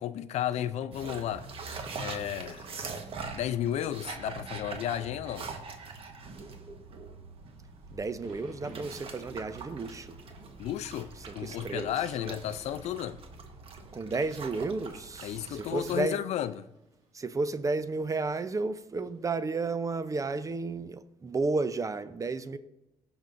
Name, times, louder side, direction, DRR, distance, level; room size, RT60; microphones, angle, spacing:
voice 1, 0.0-1.5 2.0-2.7 3.3-5.5 10.6-13.2 15.2-16.7, left 11 dB, 75° left, 0.5 m, -33 dB
sound 1, 0.9-16.0, right 4 dB, 55° right, 1.3 m, -43 dB
Thunder / Rain, 7.5-20.5, right 2 dB, 75° right, 2.8 m, -57 dB
voice 2, 7.9-10.2 11.3-11.9 12.3-12.5 13.9-16.2 17.1-22.6, right 3 dB, 30° right, 0.6 m, -32 dB
15.5 x 6.2 x 2.6 m
cardioid pair, 80°, 11 cm